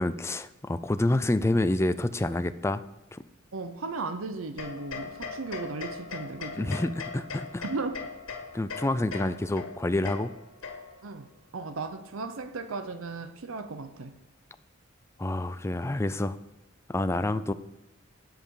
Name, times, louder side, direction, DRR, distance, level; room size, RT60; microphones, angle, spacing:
voice 1, 0.0-2.8 3.1-3.2 6.6-7.6 8.5-10.3 15.2-16.4 16.9-17.5, left 1 dB, 15° left, 0.4 m, -28 dB
voice 2, 3.5-6.8 7.6-8.0 11.0-11.3 11.5-14.1, right 3 dB, 85° right, 0.7 m, -36 dB
sound 1, 4.6-11.1, left 4 dB, 80° left, 1.9 m, -40 dB
9.0 x 7.7 x 4.8 m
head